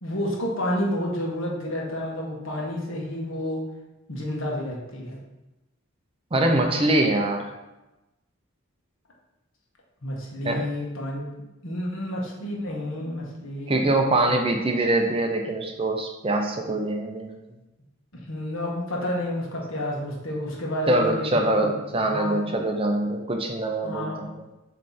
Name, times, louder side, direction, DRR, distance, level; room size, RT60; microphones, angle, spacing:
voice 1, 0.0-3.6 4.1-5.2 10.0-11.2 11.6-13.9 14.2-14.3 18.1-22.5 23.8-24.3, left 1 dB, 65° left, -2 dB, 1.4 m, -30 dB
voice 2, 6.3-7.5 10.4-10.6 13.7-17.4 20.9-24.3, right 2 dB, 25° right, 3 dB, 0.5 m, -23 dB
7.2 x 3.2 x 4.2 m, 1.0 s
head